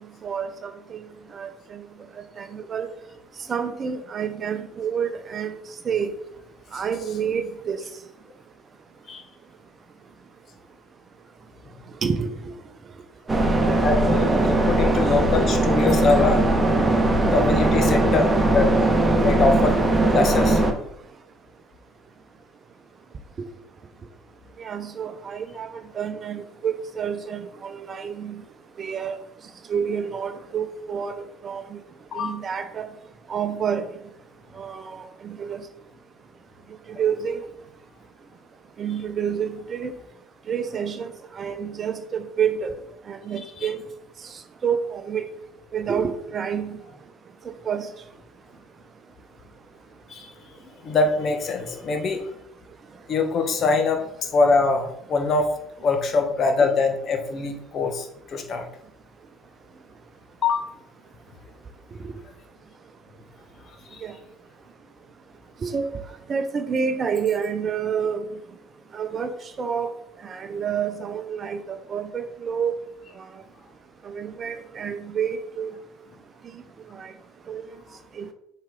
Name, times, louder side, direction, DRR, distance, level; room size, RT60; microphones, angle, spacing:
voice 1, 0.2-1.0 1.3-1.8 2.4-2.9 3.5-5.6 5.8-6.1 6.7-7.8 12.0-12.5 24.6-28.4 28.8-29.2 29.7-31.1 31.4-31.8 32.2-32.9 33.3-33.8 34.6-35.6 37.0-37.4 38.8-39.9 40.5-42.7 43.1-43.8 44.6-45.2 45.7-46.8 47.6-47.9 62.0-62.1 64.0-64.1 65.6-65.8 66.3-68.3 68.9-69.3 69.6-69.9 70.2-72.7 74.1-75.7 76.9-77.1 77.5-77.6 78.2-78.3, right 7 dB, 40° right, 7 dB, 0.7 m, -28 dB
sound 1, 13.3-20.7, right 2 dB, 15° right, 1.4 m, -20 dB
voice 2, 13.8-16.5 17.3-18.9 19.2-19.8 20.1-20.6 32.1-32.3 43.6-43.7 50.1-50.3 50.8-52.3 53.1-55.5 55.8-58.6 60.4-60.7 63.9-64.0, left 3 dB, 45° left, 5 dB, 1.3 m, -23 dB
7.2 x 4.6 x 3.8 m, 0.74 s
hypercardioid pair, 60°, 0 cm